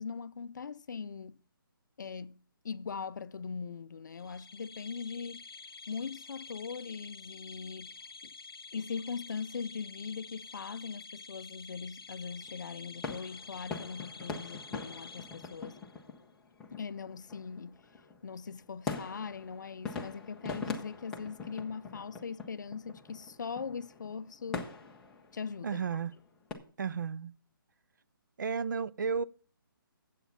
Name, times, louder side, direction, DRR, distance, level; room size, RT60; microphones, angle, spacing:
voice 1, 0.0-1.4 2.0-5.4 5.9-8.0 8.2-8.3 8.7-15.8 16.7-17.8 18.2-24.7 25.3-25.8, left 5 dB, 55° left, 0.5 m, -40 dB
sound 1, 4.2-16.0, left 4 dB, 90° left, 0.8 m, -49 dB
sound 2, 12.3-26.5, left 4 dB, 5° left, 0.7 m, -43 dB
voice 2, 25.6-26.1 26.8-27.3 28.4-29.2, right 6 dB, 55° right, 0.5 m, -33 dB
9.4 x 8.1 x 5.7 m
hypercardioid pair, 170°, 12 cm